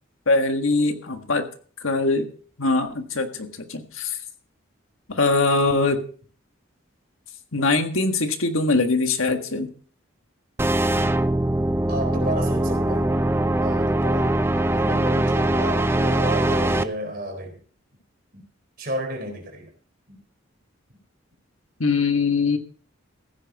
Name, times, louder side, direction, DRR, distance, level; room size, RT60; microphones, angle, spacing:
voice 1, 0.3-1.4 1.8-2.3 2.6-4.2 5.1-6.0 7.5-9.7 21.8-22.6, left 3 dB, 90° left, 6 dB, 1.7 m, -22 dB
sound 1, 10.6-16.8, right 1 dB, 10° right, 0.4 m, -22 dB
voice 2, 11.9-13.1 13.6-14.3 14.7-17.6 18.3-18.4 18.8-19.7 20.1-20.2, right 1 dB, 45° right, 4 dB, 4.1 m, -32 dB
15.0 x 9.5 x 4.2 m, 0.43 s
head